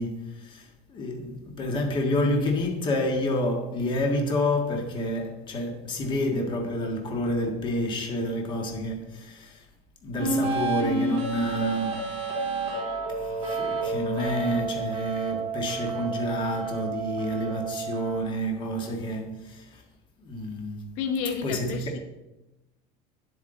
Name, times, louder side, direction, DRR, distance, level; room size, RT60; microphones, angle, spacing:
voice 1, 0.0-9.6 10.0-12.1 13.2-19.8 20.2-21.0 21.4-21.8, left 1 dB, 30° left, 1.7 m, -29 dB
sound 1, 10.2-18.2, right 3 dB, 40° right, 2.6 m, -30 dB
voice 2, 21.0-22.0, left 6 dB, 85° left, 1.0 m, -30 dB
9.6 x 8.2 x 3.8 m
cardioid pair, 160°, 16 cm